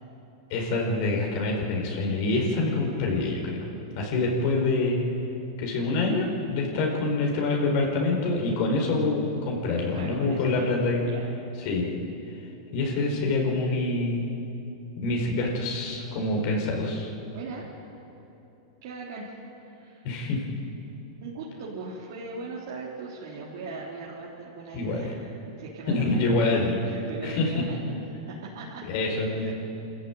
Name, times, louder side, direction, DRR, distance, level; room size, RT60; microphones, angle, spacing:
voice 1, 0.5-3.7 4.0-5.0 5.6-11.0 11.6-11.9 12.7-14.3 15.0-17.1 20.0-20.4 24.7-25.0 25.9-26.8 27.2-27.6 28.9-29.5, left 2 dB, 55° left, 0 dB, 4.8 m, -26 dB
voice 2, 9.9-11.3 17.3-17.7 18.8-19.3 19.6-20.1 21.2-28.8 29.2-29.5, right 4 dB, 65° right, -5 dB, 3.9 m, -39 dB
26.0 x 14.5 x 9.4 m, 3.0 s
hypercardioid pair, 125°, 2 cm